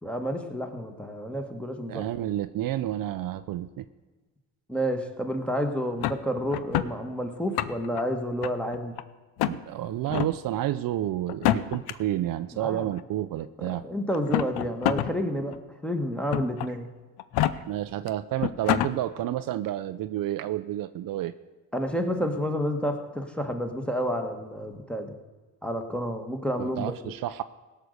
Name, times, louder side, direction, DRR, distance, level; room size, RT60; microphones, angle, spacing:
voice 1, 0.0-2.1 4.7-8.9 12.5-12.9 13.6-16.9 21.7-25.1 25.6-27.1, equal, 5° left, 5 dB, 1.6 m, -30 dB
voice 2, 1.9-3.8 9.5-13.9 17.5-21.3 26.6-27.4, right 13 dB, 55° right, 11 dB, 0.6 m, -30 dB
sound 1, 6.0-6.9 7.4-8.0 8.4-9.0 9.4-9.6 10.1-10.3 11.3-11.9 13.0-13.1 14.1-15.1 15.5-15.6 16.3-16.7 17.2-17.5 18.1-18.2 18.4-18.9, left 13 dB, 70° left, 0.7 m, -26 dB
17.0 x 6.7 x 6.5 m, 1.3 s
supercardioid pair, 80°, 39 cm